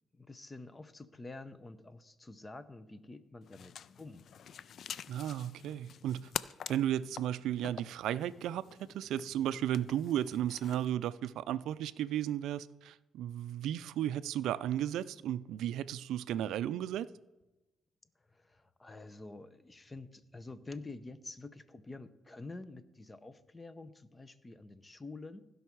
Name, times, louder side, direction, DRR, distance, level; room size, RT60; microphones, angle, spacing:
voice 1, 0.1-4.2 18.3-25.5, left 3 dB, 20° left, 0.7 m, -48 dB
sound 1, 3.4-11.0, left 8 dB, 60° left, 0.3 m, -46 dB
voice 2, 5.1-6.3 6.7-17.1, right 11 dB, 80° right, 0.4 m, -34 dB
16.0 x 5.5 x 4.6 m
cardioid pair, 90°, 0 cm